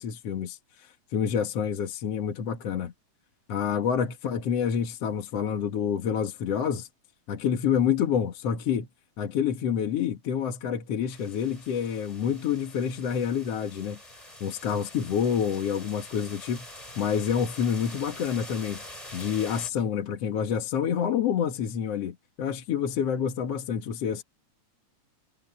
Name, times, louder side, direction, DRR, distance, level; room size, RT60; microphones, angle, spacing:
voice 1, 0.0-2.9 3.5-6.9 7.3-8.9 9.2-14.0 14.4-16.7 17.0-18.8 19.1-24.2, left 8 dB, 60° left, 2.5 m, -28 dB
sound 1, 11.1-19.7, left 1 dB, 10° left, 4.5 m, -45 dB
omnidirectional pair, 3.3 m